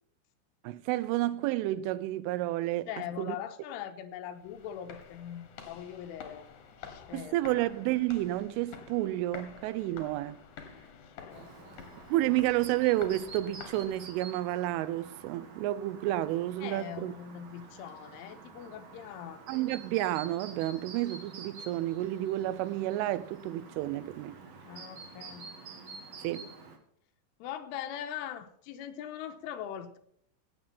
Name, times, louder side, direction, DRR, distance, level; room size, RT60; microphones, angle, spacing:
voice 1, 0.6-3.4 7.1-10.4 12.1-17.1 19.5-24.4 26.2-26.5, right 15 dB, 85° right, 3.2 m, -30 dB
voice 2, 2.9-6.5 6.8-7.6 11.2-11.9 16.6-19.6 24.7-25.5 27.4-30.0, left 10 dB, 90° left, 3.5 m, -41 dB
sound 1, 4.3-14.3, left 6 dB, 60° left, 2.2 m, -50 dB
Chirp tweet, 11.3-26.8, right 4 dB, 55° right, 1.9 m, -49 dB
16.0 x 7.5 x 5.7 m
omnidirectional pair, 5.6 m